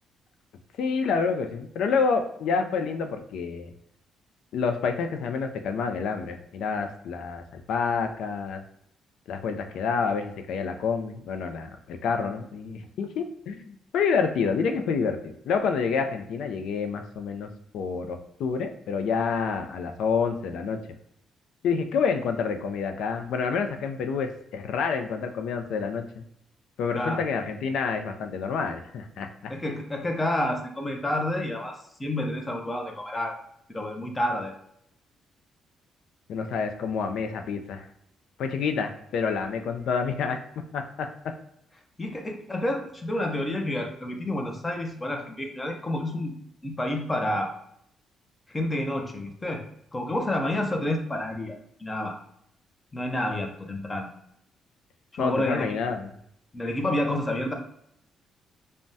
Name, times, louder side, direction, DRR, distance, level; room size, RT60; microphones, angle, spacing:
voice 1, 0.8-3.7 4.5-8.6 9.3-17.5 17.7-20.8 21.6-26.0 26.8-29.3 36.3-37.9 38.4-40.4 40.7-41.1 55.2-56.1, left 5 dB, 80° left, 6 dB, 0.3 m, -28 dB
voice 2, 29.5-33.4 33.7-34.5 42.0-46.3 46.6-47.5 48.5-49.6 49.9-52.2 52.9-54.1 55.1-55.7 56.5-57.5, left 1 dB, 20° left, 3 dB, 0.5 m, -29 dB
3.3 x 2.1 x 2.6 m, 0.73 s
cardioid pair, 120°, 0 cm